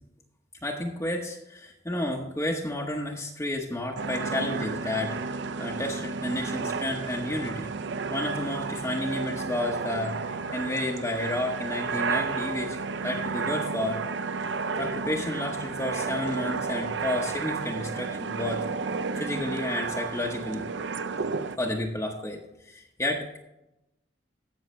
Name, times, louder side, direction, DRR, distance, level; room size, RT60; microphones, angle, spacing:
voice 1, 0.6-7.7 8.1-10.2 10.5-12.8 13.0-14.0 14.8-18.7 19.2-20.7 21.6-23.4, left 1 dB, 15° left, -1 dB, 0.9 m, -31 dB
sound 1, 4.0-21.6, right 4 dB, 85° right, 0.6 m, -32 dB
16.0 x 6.3 x 3.2 m, 0.89 s
head